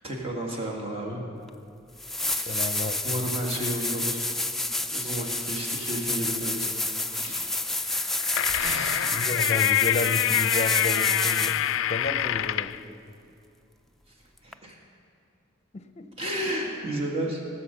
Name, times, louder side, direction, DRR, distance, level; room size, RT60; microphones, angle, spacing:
voice 1, 0.0-1.2 2.2-2.7 3.0-4.3 4.9-6.7 7.1-7.5 8.5-9.2 14.1-14.8 16.2-17.4, equal, 30° right, -1 dB, 1.8 m, -32 dB
sound 1, 1.5-1.6 2.0-11.7 14.5-14.6, left 2 dB, ahead, 0.4 m, -29 dB
voice 2, 2.5-3.0 9.0-11.6 11.9-12.7 15.7-16.1, left 2 dB, 35° left, 8 dB, 0.7 m, -31 dB
sound 2, 7.9-12.8, left 12 dB, 75° left, 0.3 m, -26 dB
17.5 x 7.9 x 6.8 m, 2.5 s
head